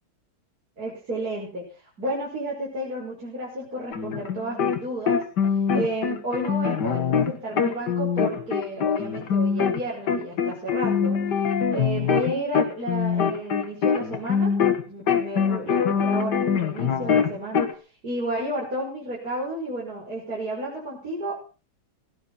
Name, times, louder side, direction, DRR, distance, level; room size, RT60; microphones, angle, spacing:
voice 1, 0.8-5.2 5.7-11.2 11.7-14.5 14.9-17.7 18.0-21.4, right 1 dB, 45° right, -5 dB, 6.2 m, -32 dB
sound 1, 3.9-4.8 5.1-9.8 10.1-14.8 15.1-17.7, left 7 dB, 55° left, 2.1 m, -23 dB
17.5 x 10.5 x 5.6 m, 0.35 s
omnidirectional pair, 2.2 m